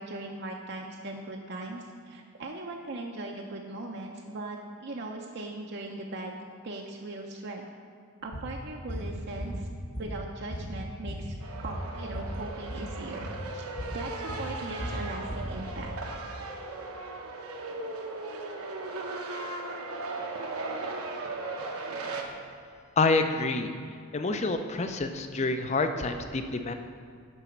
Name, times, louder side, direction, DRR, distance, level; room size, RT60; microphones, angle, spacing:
voice 1, 0.0-7.7 8.2-9.7 10.0-11.3 11.6-13.7 13.9-15.9, right 2 dB, 50° right, 1 dB, 0.6 m, -39 dB
sound 1, 8.3-8.5 8.9-9.1 9.4-10.2 10.5-12.3 12.6-12.9 13.2-13.4 13.8-14.0 14.3-16.0, equal, 50° left, 1.6 m, -36 dB
sound 2, 11.4-22.2, right 3 dB, 80° right, 0.9 m, -37 dB
voice 2, 23.0-23.7 24.1-26.7, left 3 dB, 30° left, 7 dB, 0.5 m, -27 dB
11.0 x 4.1 x 5.9 m, 2.2 s
head